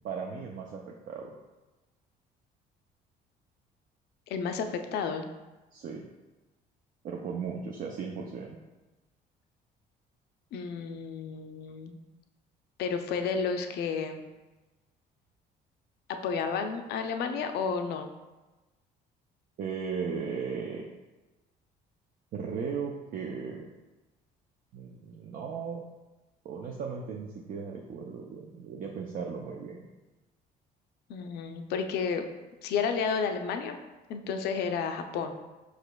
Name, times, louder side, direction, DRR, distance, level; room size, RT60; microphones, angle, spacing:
voice 1, 0.0-1.3 5.7-6.0 7.0-8.6 19.6-20.8 22.3-23.7 24.7-25.8 26.4-29.8, right 6 dB, 55° right, 0 dB, 0.5 m, -36 dB
voice 2, 4.3-5.2 10.5-11.9 12.8-14.2 16.2-18.1 31.1-32.3 32.6-33.8 34.1-35.3, left 5 dB, 75° left, 6 dB, 0.5 m, -31 dB
4.9 x 4.9 x 2.2 m, 1.1 s
cardioid pair, 110°, 17 cm